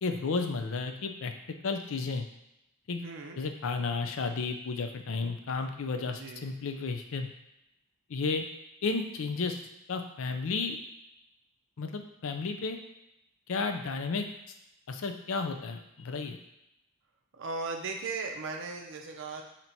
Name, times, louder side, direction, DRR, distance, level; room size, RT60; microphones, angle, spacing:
voice 1, 0.0-1.3 1.6-2.3 2.9-3.0 3.4-7.3 8.1-8.4 8.8-9.6 9.9-10.8 11.8-12.8 13.5-14.3 14.9-16.4, left 4 dB, 65° left, 6 dB, 0.5 m, -32 dB
voice 2, 3.0-3.4 6.1-6.5 17.3-19.4, right 4 dB, 60° right, 3 dB, 0.6 m, -37 dB
4.1 x 2.9 x 4.4 m, 0.87 s
head